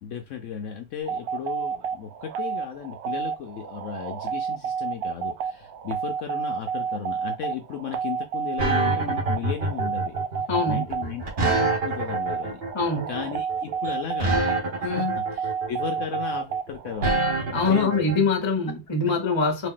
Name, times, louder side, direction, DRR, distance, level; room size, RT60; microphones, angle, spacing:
voice 1, 0.0-10.1 10.7-12.6 13.1-14.4 14.8-17.2 17.7-18.0, left 8 dB, 70° left, 0.8 m, -35 dB
sound 1, 1.1-17.3, right 7 dB, 70° right, 1.0 m, -30 dB
sound 2, 8.6-18.2, right 2 dB, 45° right, 1.2 m, -26 dB
voice 2, 10.5-10.8 12.7-13.1 14.8-15.1 17.5-19.7, left 3 dB, 25° left, 0.7 m, -24 dB
2.9 x 2.8 x 3.6 m
omnidirectional pair, 1.6 m